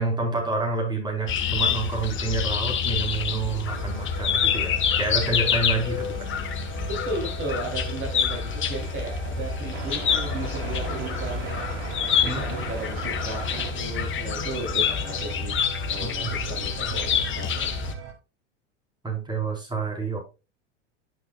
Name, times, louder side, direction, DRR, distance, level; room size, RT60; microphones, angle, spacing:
voice 1, 0.0-6.3 12.2-12.4 16.2-16.3 16.9-17.0 19.0-20.2, right 3 dB, 10° right, -1 dB, 4.4 m, -28 dB
sound 1, 1.3-17.9, left 7 dB, 35° left, 1.4 m, -27 dB
sound 2, 3.7-18.1, right 7 dB, 70° right, 2.9 m, -39 dB
voice 2, 7.0-11.6 12.2-17.7, right 2 dB, 35° right, 0 dB, 3.3 m, -35 dB
11.0 x 6.3 x 2.4 m, 0.28 s
hypercardioid pair, 100°, 36 cm